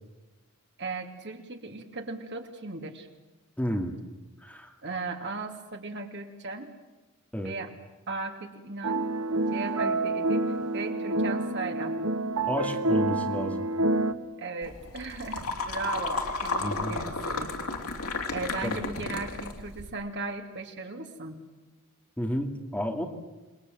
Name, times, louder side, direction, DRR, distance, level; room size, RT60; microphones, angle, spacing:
voice 1, 0.8-3.1 4.8-6.7 7.4-7.7 8.1-9.1 9.5-12.0 14.4-17.5 18.3-21.4, right 3 dB, 55° right, 4 dB, 2.7 m, -37 dB
voice 2, 3.6-3.9 4.4-4.7 7.3-7.5 12.5-13.6 16.6-17.0 18.6-18.8 22.2-23.0, equal, 5° left, 2 dB, 2.4 m, -31 dB
sound 1, 8.8-14.1, right 2 dB, 70° right, 1.4 m, -28 dB
sound 2, 14.6-19.9, left 3 dB, 80° left, 2.9 m, -33 dB
28.0 x 21.0 x 7.8 m, 1.1 s
head